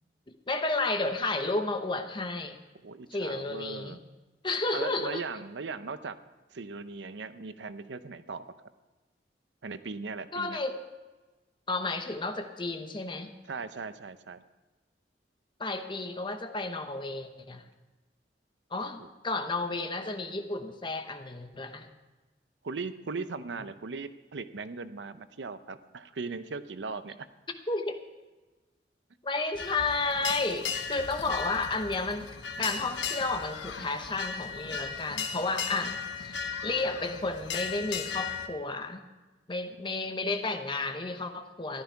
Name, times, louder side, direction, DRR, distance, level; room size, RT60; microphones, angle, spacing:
voice 1, 0.5-2.6 3.1-4.0 4.4-5.2 10.3-10.8 11.7-13.3 15.6-17.6 18.7-21.9 27.7-28.0 29.2-32.3 32.6-36.4 36.6-39.0 39.5-41.8, left 3 dB, 25° left, 7 dB, 1.0 m, -32 dB
voice 2, 2.8-4.0 4.7-6.2 6.5-8.5 9.6-10.6 13.5-14.4 19.0-19.1 22.6-27.3 39.7-39.8 40.2-40.3, right 4 dB, 85° right, 12 dB, 0.7 m, -38 dB
sound 1, 29.5-38.5, left 6 dB, 80° left, 0.9 m, -36 dB
14.0 x 12.0 x 4.7 m, 1.2 s
head